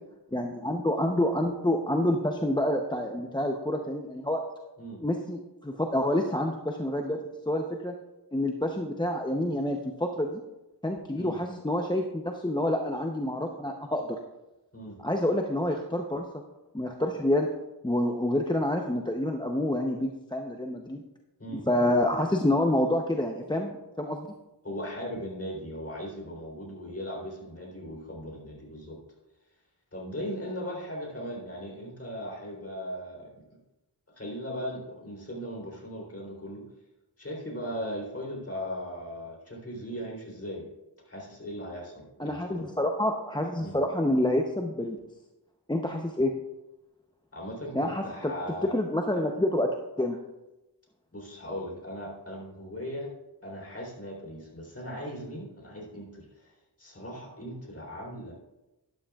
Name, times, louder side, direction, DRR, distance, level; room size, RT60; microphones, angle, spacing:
voice 1, 0.3-4.4 5.0-7.9 8.3-10.4 10.8-14.2 15.0-16.4 16.7-21.0 21.5-24.3 42.2-45.0 45.7-46.3 47.7-48.3 48.6-50.2, left 1 dB, 10° left, 2 dB, 0.7 m, -28 dB
voice 2, 24.6-29.0 29.9-33.6 34.2-36.6 37.2-40.7 41.1-42.7 43.6-43.8 47.3-48.8 51.1-53.1 53.4-58.3, equal, 35° left, -1 dB, 3.6 m, -38 dB
12.5 x 11.5 x 2.4 m, 0.99 s
wide cardioid pair, 75°, 42 cm